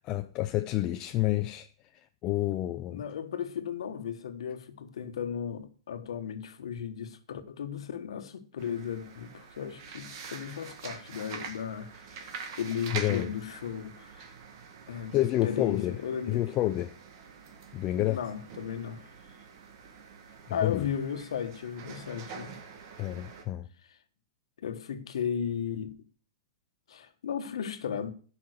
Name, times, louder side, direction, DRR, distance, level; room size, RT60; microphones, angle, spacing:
voice 1, 0.0-3.0 12.9-13.3 15.1-16.0 16.3-17.0 17.7-18.2 20.5-20.9 23.0-23.7, left 15 dB, 25° left, 0.4 m, -29 dB
voice 2, 2.9-14.3 14.9-16.4 17.9-19.1 20.5-22.6 23.8-24.0 24.6-25.9 26.9-28.1, left 8 dB, 80° left, 1.3 m, -35 dB
sound 1, 8.6-23.4, right 6 dB, 45° right, 1.7 m, -45 dB
11.0 x 5.7 x 6.5 m
hypercardioid pair, 160°, 3 cm